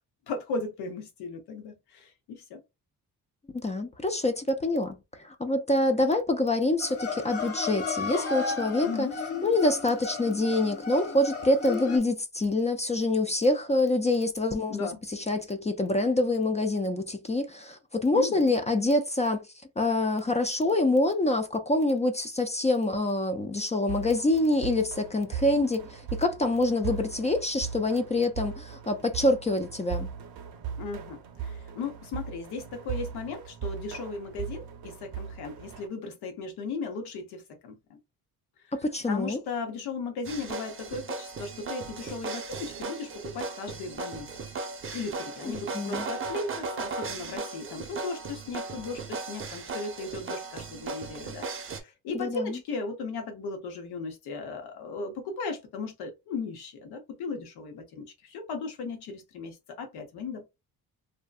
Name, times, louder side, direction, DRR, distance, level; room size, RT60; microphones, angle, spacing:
voice 1, 0.3-2.6 8.8-9.2 14.7-15.0 18.1-18.6 30.8-38.0 38.6-38.7 39.1-44.3 44.9-60.4, left 4 dB, 90° left, 0.9 m, -36 dB
voice 2, 3.6-9.1 9.4-19.5 19.8-30.1 38.7-39.4 45.5-46.1 52.1-52.6, left 2 dB, 20° left, 0.3 m, -26 dB
sound 1, 6.8-12.0, left 4 dB, 40° left, 0.9 m, -34 dB
sound 2, 23.9-35.9, right 7 dB, 70° right, 0.7 m, -39 dB
sound 3, 40.2-51.8, right 4 dB, 35° right, 0.6 m, -37 dB
2.6 x 2.2 x 2.3 m
cardioid pair, 85°, 37 cm